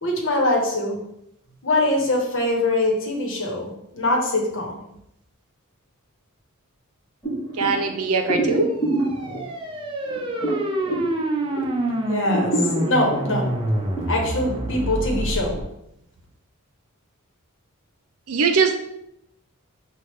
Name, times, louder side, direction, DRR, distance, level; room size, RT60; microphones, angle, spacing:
voice 1, 0.0-1.0 1.6-4.8 12.1-12.5 12.9-13.5 14.1-15.6, left 1 dB, 65° left, 0 dB, 1.1 m, -23 dB
sound 1, 7.2-11.8 12.2-14.0, right 1 dB, 20° left, 1.4 m, -28 dB
voice 2, 7.5-8.8 18.3-18.8, right 4 dB, 80° right, 6 dB, 0.6 m, -21 dB
sound 2, 8.7-15.6, right 1 dB, 25° right, 0.6 m, -27 dB
6.1 x 2.4 x 3.1 m, 0.78 s
head